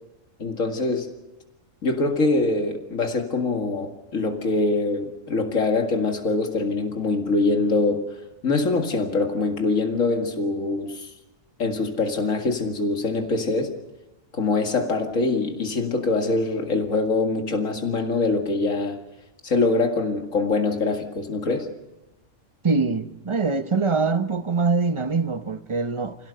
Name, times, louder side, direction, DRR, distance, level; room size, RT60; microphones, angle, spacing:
voice 1, 0.4-1.1 1.8-8.0 8.4-11.1 11.6-13.7 14.3-19.0 19.4-21.7, left 3 dB, 85° left, 2.4 m, -24 dB
voice 2, 22.6-26.2, right 4 dB, 25° right, 0.8 m, -23 dB
26.5 x 17.0 x 6.7 m
omnidirectional pair, 1.3 m